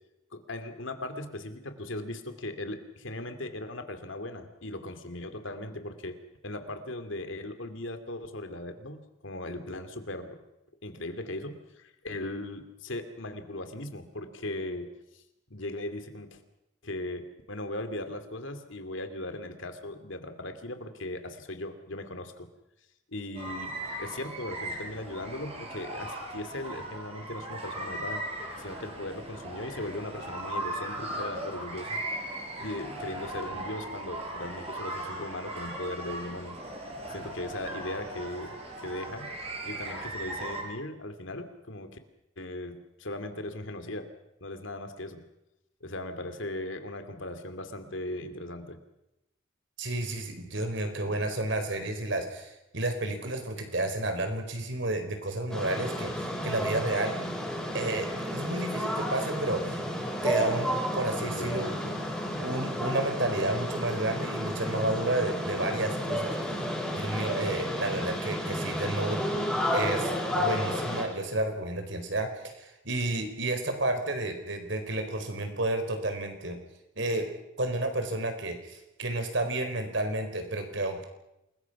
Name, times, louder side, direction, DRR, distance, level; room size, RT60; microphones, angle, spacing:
voice 1, 0.3-10.4 10.8-15.2 15.5-16.4 16.8-22.5 23.1-28.2 28.6-32.0 32.6-36.6 37.1-39.3 39.6-42.0 42.4-44.1 44.4-45.2 45.8-48.8 61.2-61.6, left 1 dB, 70° left, 8 dB, 2.6 m, -38 dB
sound 1, 23.3-40.6, right 1 dB, 30° right, 5.9 m, -38 dB
voice 2, 49.8-57.2 57.7-59.8 60.2-61.9 62.4-66.7 67.0-69.2 69.7-76.6 77.0-77.3 77.6-81.0, right 2 dB, 65° right, 6 dB, 4.5 m, -31 dB
sound 2, 55.5-71.0, equal, 5° left, 6.4 m, -32 dB
28.0 x 21.5 x 6.1 m, 0.88 s
head